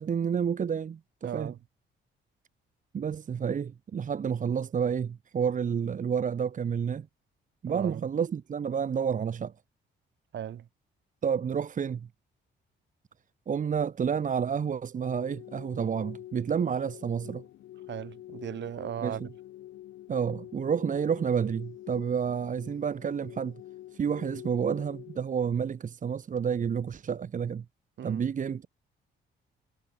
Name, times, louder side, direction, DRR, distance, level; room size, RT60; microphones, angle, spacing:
voice 1, 0.0-1.5 2.9-7.1 7.6-9.5 11.2-12.1 13.5-17.4 19.0-19.3 20.1-23.6 23.9-27.6 28.0-28.7, right 7 dB, 40° right, 1.0 m, -30 dB
voice 2, 1.2-1.6 7.7-8.0 10.3-10.6 17.9-19.2 28.0-28.2, right 10 dB, 65° right, 3.3 m, -37 dB
sound 1, 15.0-25.2, left 14 dB, 80° left, 1.6 m, -46 dB
cardioid pair, 90°, 20 cm